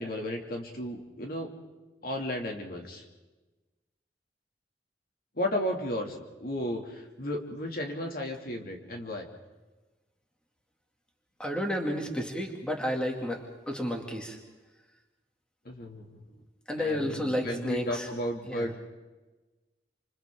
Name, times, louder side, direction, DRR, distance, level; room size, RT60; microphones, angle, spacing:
voice 1, 0.0-1.5 2.0-3.0 5.4-9.3 15.6-16.2 16.8-18.8, left 1 dB, 55° left, 2 dB, 2.7 m, -34 dB
voice 2, 11.4-14.4 16.7-18.1 18.5-18.7, equal, 5° left, 1 dB, 2.6 m, -31 dB
28.5 x 27.0 x 3.8 m, 1.2 s
head